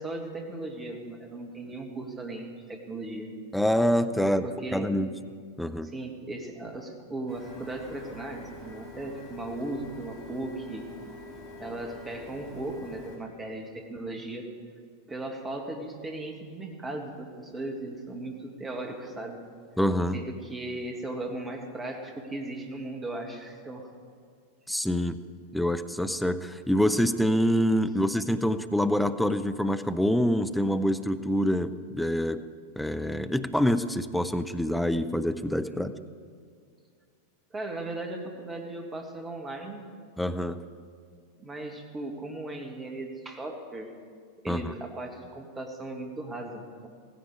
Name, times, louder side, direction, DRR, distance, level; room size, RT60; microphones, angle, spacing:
voice 1, 0.0-3.3 4.2-5.0 5.8-10.9 11.6-14.5 15.1-19.4 20.1-23.9 35.6-35.9 37.5-39.9 41.4-43.9 44.4-46.9, right 2 dB, 15° right, 3 dB, 2.0 m, -37 dB
voice 2, 3.5-4.4 4.7-5.1 5.6-5.9 19.8-20.2 24.7-25.2 25.5-32.4 32.8-35.9 40.2-40.6 44.5-44.7, equal, ahead, 9 dB, 0.6 m, -26 dB
Printer, 7.3-13.2, left 2 dB, 35° left, 5.0 m, -45 dB
16.0 x 15.0 x 4.9 m, 2.2 s
figure-of-eight pair, 90°, 0 cm